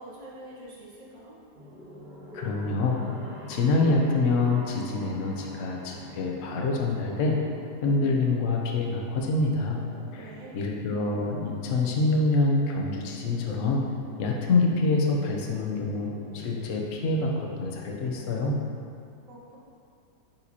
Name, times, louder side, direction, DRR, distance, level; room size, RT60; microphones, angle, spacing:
voice 1, 0.0-1.4 10.0-10.6 19.3-19.6, right 1 dB, 55° right, -7 dB, 1.8 m, -45 dB
sound 1, 1.5-18.5, equal, 35° right, 1.0 m, -45 dB
voice 2, 2.3-3.0 3.5-7.4 7.8-9.8 10.1-13.8 14.2-18.6, left 3 dB, 55° left, 0 dB, 1.0 m, -26 dB
9.0 x 4.6 x 2.8 m, 2.3 s
omnidirectional pair, 1.8 m